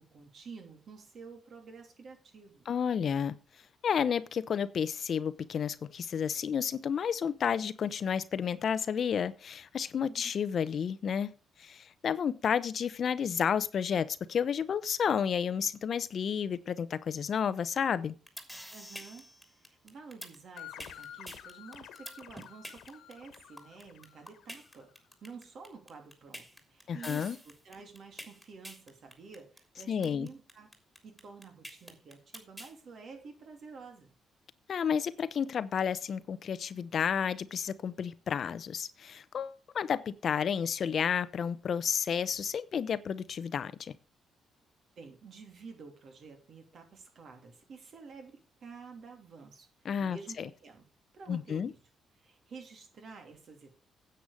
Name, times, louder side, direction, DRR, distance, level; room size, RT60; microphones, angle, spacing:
voice 1, 0.0-2.7 10.0-10.2 18.7-24.9 25.2-30.7 31.0-34.1 45.0-49.7 50.0-50.9 51.1-51.8 52.2-53.8, right 4 dB, 55° right, 3.0 m, -50 dB
voice 2, 2.7-3.3 3.8-11.3 11.6-18.2 26.9-27.4 29.9-30.3 34.7-43.9 49.8-50.5 51.3-51.7, left 7 dB, 55° left, 0.7 m, -31 dB
sound 1, 18.0-32.7, equal, 5° right, 3.2 m, -46 dB
sound 2, 20.6-24.9, left 10 dB, 80° left, 1.6 m, -50 dB
9.6 x 8.0 x 5.0 m
cardioid pair, 90°, 0 cm